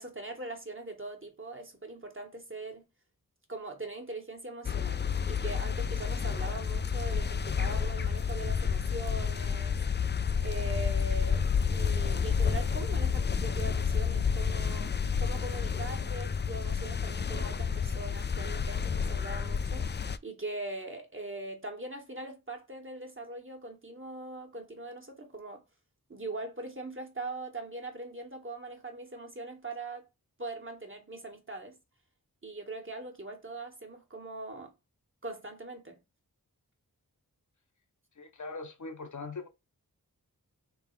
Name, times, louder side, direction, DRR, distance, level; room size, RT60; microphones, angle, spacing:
voice 1, 0.0-2.9 3.5-9.8 10.4-25.6 26.1-30.1 30.4-31.8 32.4-34.7 35.2-36.0, right 2 dB, 35° right, 1.5 m, -41 dB
sound 1, 4.6-20.2, left 6 dB, 30° left, 0.4 m, -30 dB
voice 2, 38.2-39.5, left 3 dB, 55° left, 0.8 m, -41 dB
3.7 x 3.1 x 4.6 m
wide cardioid pair, 45°, 36 cm